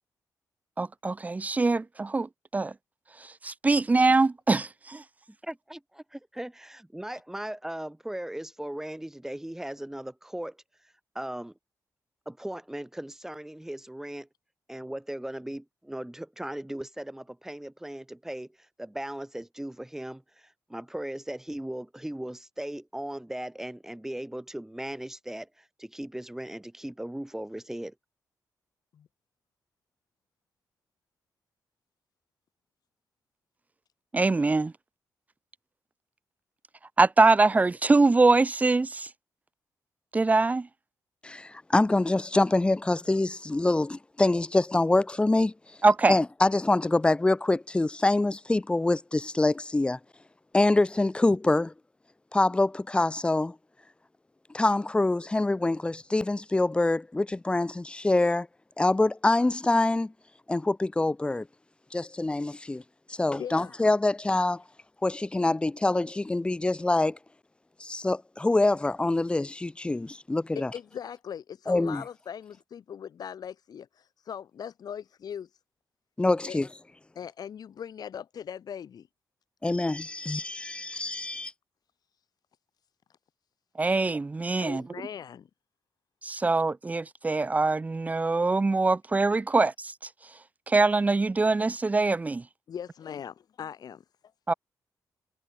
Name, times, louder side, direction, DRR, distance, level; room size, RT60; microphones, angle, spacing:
voice 1, 0.8-2.7 3.2-5.0 34.1-34.7 37.0-39.1 40.1-40.7 45.8-46.2 83.8-84.8 86.2-89.9 90.7-92.4 94.5-94.6, right 3 dB, 20° right, 0.6 m, -23 dB
voice 2, 5.4-10.6 11.2-11.5 12.3-14.3 14.7-18.5 18.8-27.9, right 1 dB, 5° right, 1.9 m, -38 dB
voice 3, 41.2-45.5 46.1-50.0 50.5-51.7 52.3-53.6 54.5-58.5 58.8-60.1 60.5-61.5 61.9-62.8 63.2-64.6 65.0-67.2 67.8-70.7 71.7-72.0 76.2-76.7 79.6-81.5, left 2 dB, 15° left, 0.7 m, -25 dB
voice 4, 63.4-63.7 70.5-75.5 76.5-76.6 77.1-79.1 84.6-85.5 92.7-94.0, left 8 dB, 70° left, 6.2 m, -40 dB
cardioid pair, 105°, 7 cm